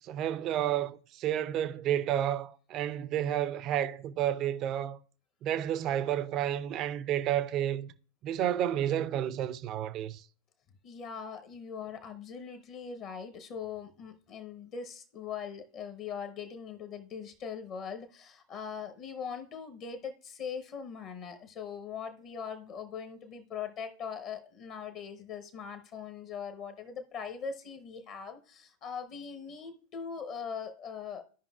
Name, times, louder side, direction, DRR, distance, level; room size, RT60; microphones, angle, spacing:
voice 1, 0.0-5.0 5.4-7.9 8.2-10.2, right 11 dB, 35° right, 0.5 m, -31 dB
voice 2, 10.8-31.2, left 6 dB, 35° left, 0.9 m, -41 dB
14.0 x 5.3 x 2.3 m
figure-of-eight pair, 90°, 0 cm